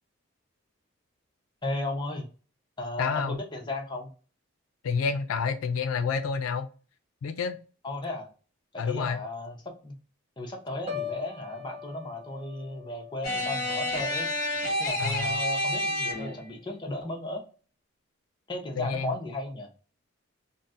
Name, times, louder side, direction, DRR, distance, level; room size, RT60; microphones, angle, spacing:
voice 1, 1.6-2.3 2.8-4.1 7.8-8.3 8.7-9.6 9.8-9.9 10.4-14.3 14.8-17.4 18.5-19.7, left 2 dB, 20° left, 0.7 m, -35 dB
voice 2, 3.0-3.4 4.8-6.7 7.2-7.6 8.8-9.2 15.0-15.4 18.8-19.2, left 5 dB, 90° left, 0.4 m, -29 dB
Piano, 10.9-14.8 15.2-15.6, left 7 dB, 30° right, 0.6 m, -42 dB
sound 1, 13.2-16.5, left 1 dB, 50° left, 1.2 m, -29 dB
4.0 x 2.0 x 2.5 m
head